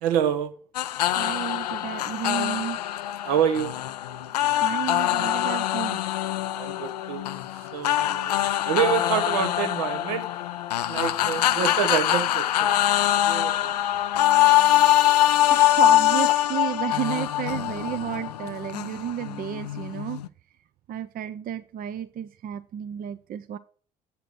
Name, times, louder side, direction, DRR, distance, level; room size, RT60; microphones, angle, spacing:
voice 1, 0.0-0.5 3.2-3.8 6.5-10.3 10.9-12.7 13.1-13.7, right 9 dB, 75° right, 1.0 m, -27 dB
sound 1, 0.7-20.3, left 13 dB, 85° left, 0.4 m, -23 dB
voice 2, 1.2-2.8 4.6-6.0 15.5-20.2 20.9-23.6, right 10 dB, 45° right, 0.6 m, -32 dB
7.7 x 6.8 x 6.0 m
hypercardioid pair, 55°, 20 cm